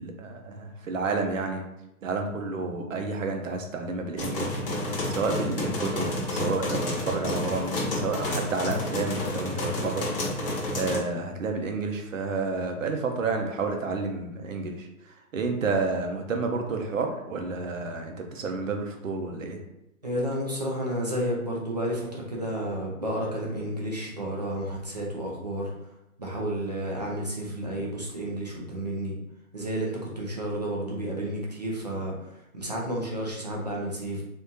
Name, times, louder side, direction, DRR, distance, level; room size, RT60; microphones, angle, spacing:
voice 1, 0.0-1.6 2.0-4.6 5.1-10.1 10.3-19.6, right 3 dB, 60° right, 4 dB, 0.8 m, -30 dB
sound 1, 4.2-11.0, left 1 dB, 40° left, 0.9 m, -30 dB
voice 2, 20.0-25.7 26.2-29.1 29.5-34.2, right 1 dB, 30° right, -3 dB, 0.5 m, -31 dB
3.6 x 2.7 x 2.7 m, 0.86 s
hypercardioid pair, 165°, 45 cm